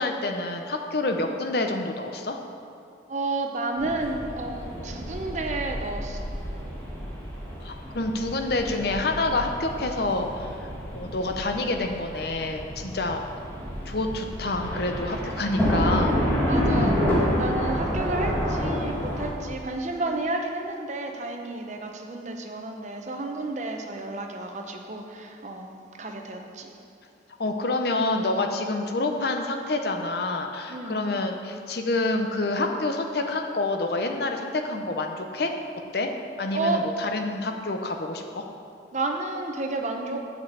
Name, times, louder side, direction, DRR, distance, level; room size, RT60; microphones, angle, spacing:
voice 1, 0.0-2.4 7.6-13.3 13.9-16.2 27.4-35.5 35.9-36.1 36.4-38.4, left 2 dB, 55° left, 4 dB, 0.7 m, -28 dB
voice 2, 3.1-6.4 16.4-25.7 26.0-26.7 30.7-31.0 36.5-36.9 38.9-40.2, right 2 dB, 40° right, 3 dB, 0.7 m, -31 dB
sound 1, 3.8-19.3, equal, 10° left, 1.6 m, -29 dB
8.0 x 5.2 x 7.1 m, 2.6 s
head